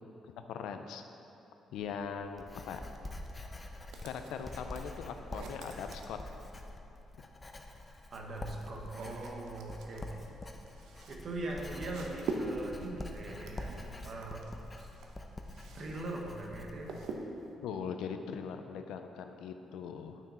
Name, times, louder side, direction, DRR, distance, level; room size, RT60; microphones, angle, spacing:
voice 1, 0.5-1.0 1.7-2.8 4.0-6.2 17.6-20.2, left 6 dB, 85° left, 7 dB, 0.5 m, -40 dB
Writing, 1.7-17.1, left 1 dB, 20° left, 0.7 m, -46 dB
sound 1, 3.9-6.8 7.8-16.0 16.3-17.5, right 3 dB, 80° right, 0.8 m, -45 dB
voice 2, 8.1-10.1 11.1-13.7 14.0-14.4 15.7-16.9, right 2 dB, 55° right, 0 dB, 1.2 m, -41 dB
9.1 x 6.1 x 4.3 m, 3.0 s
cardioid pair, 90°, 0 cm